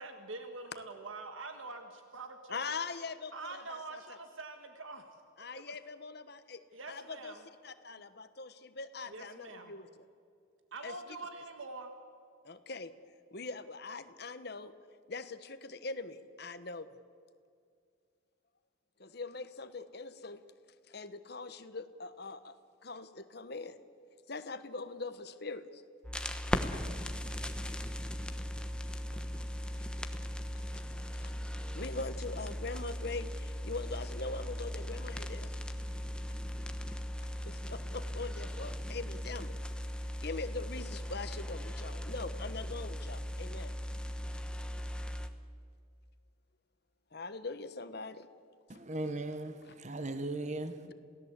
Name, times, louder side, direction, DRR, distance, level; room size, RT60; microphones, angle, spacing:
voice 1, 0.0-2.6 3.3-5.0 5.5-5.7 6.7-7.4 9.1-9.8 10.7-11.9, right 3 dB, 75° right, 1.6 m, -45 dB
voice 2, 2.5-4.2 5.4-6.6 6.9-7.3 7.6-9.9 10.8-10.9 12.4-12.9 13.3-14.7 15.1-16.9 19.0-20.4 20.9-22.5 22.8-23.8 24.3-25.8 27.0-27.1 29.8-29.9 30.7-31.3 31.7-35.5 37.4-39.6 40.2-43.7 47.1-48.3 50.8-50.9, left 3 dB, 50° left, 1.2 m, -42 dB
sound 1, 26.0-45.3, equal, 5° left, 1.0 m, -38 dB
voice 3, 48.7-50.9, right 2 dB, 35° right, 1.2 m, -38 dB
28.0 x 17.5 x 8.2 m
head